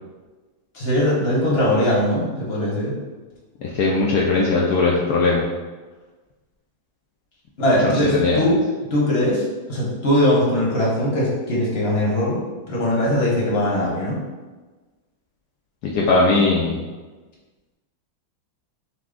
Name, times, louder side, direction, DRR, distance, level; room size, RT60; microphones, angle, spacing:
voice 1, 0.7-2.9 7.6-8.6 8.9-9.4 9.7-14.2, left 1 dB, 45° left, -5 dB, 0.8 m, -20 dB
voice 2, 3.6-5.4 7.8-8.4 15.8-16.8, left 3 dB, 90° left, -3 dB, 0.8 m, -19 dB
5.8 x 2.1 x 3.6 m, 1.3 s
omnidirectional pair, 2.3 m